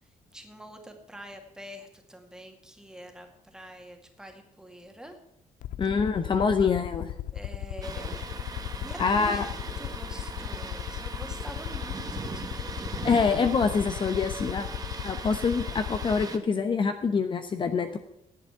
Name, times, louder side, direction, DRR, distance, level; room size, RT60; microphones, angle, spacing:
voice 1, 0.3-5.2 7.3-8.5 8.8-9.4 9.8-13.1, equal, 5° right, 4 dB, 2.1 m, -45 dB
Aircraft, 5.6-16.3, left 13 dB, 85° left, 0.4 m, -37 dB
voice 2, 5.8-7.1 9.0-9.5 13.0-14.7 15.0-18.0, left 5 dB, 40° left, 7 dB, 0.9 m, -25 dB
Thunder, 7.8-16.4, right 4 dB, 30° right, 1.3 m, -39 dB
11.0 x 8.0 x 8.1 m, 0.80 s
cardioid pair, 130°, 13 cm